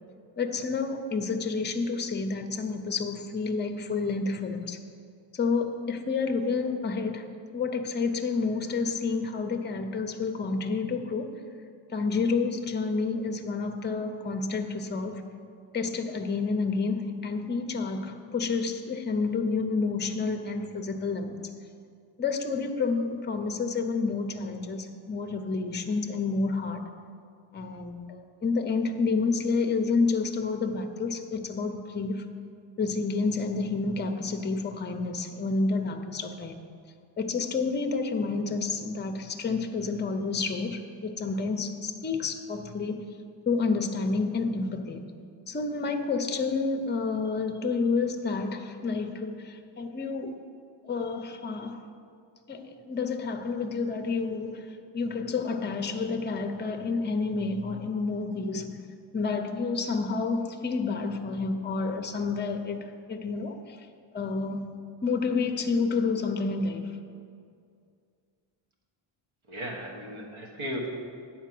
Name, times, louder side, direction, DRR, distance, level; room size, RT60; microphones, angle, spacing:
voice 1, 0.4-4.8 5.3-7.2 7.5-11.3 11.9-15.3 15.7-21.4 22.2-26.9 27.5-32.3 32.8-36.6 37.2-43.0 43.5-45.0 45.5-50.3 50.8-51.8 52.5-58.8 59.1-63.9 64.1-64.7 65.0-66.9, left 4 dB, 20° left, 5 dB, 0.5 m, -29 dB
voice 2, 69.5-70.9, equal, 75° right, 0 dB, 1.6 m, -35 dB
9.4 x 4.5 x 7.5 m, 2.3 s
wide cardioid pair, 170°, 49 cm